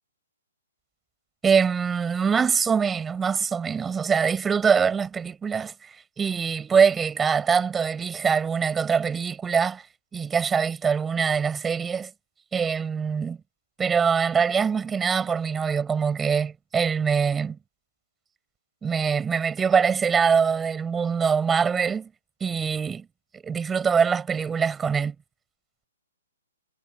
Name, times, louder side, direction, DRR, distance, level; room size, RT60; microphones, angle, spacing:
voice 1, 1.4-5.7 6.2-9.8 10.1-12.1 12.5-13.4 13.8-17.6 18.8-22.1 22.4-23.1 23.3-25.1, right 6 dB, 10° right, 6.0 m, -23 dB
hypercardioid pair, 130°, 0 cm